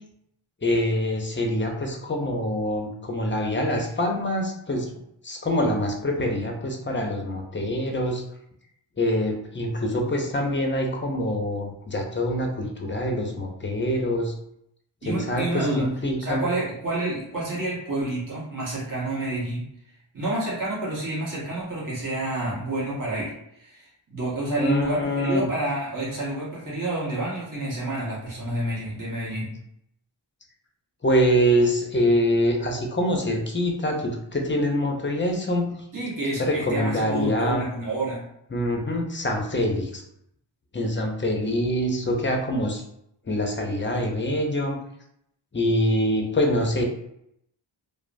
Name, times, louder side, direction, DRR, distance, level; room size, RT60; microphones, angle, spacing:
voice 1, 0.6-4.9 5.2-8.2 9.0-14.3 15.0-16.4 24.6-25.5 31.0-35.7 36.4-37.6 38.5-40.0 40.7-42.8 43.3-44.8 45.5-46.8, equal, 25° left, 2 dB, 0.6 m, -25 dB
voice 2, 15.0-15.9 16.2-19.7 20.1-29.6 35.9-38.2, right 1 dB, 40° right, -7 dB, 1.3 m, -29 dB
2.9 x 2.0 x 2.5 m, 0.75 s
cardioid pair, 45°, 48 cm